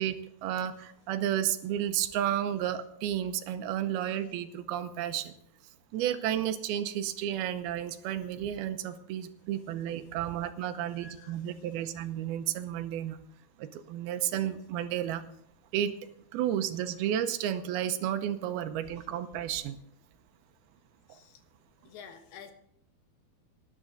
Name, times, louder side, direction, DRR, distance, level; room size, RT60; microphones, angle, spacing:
voice 1, 0.0-5.3 5.9-13.2 13.6-15.2 15.7-15.9 16.3-19.8 21.1-21.2, right 11 dB, 90° right, 10 dB, 2.7 m, -32 dB
voice 2, 10.9-11.4 21.1-21.4 21.8-22.5, left 6 dB, 85° left, 6 dB, 3.4 m, -49 dB
19.0 x 11.0 x 3.9 m, 0.71 s
omnidirectional pair, 4.4 m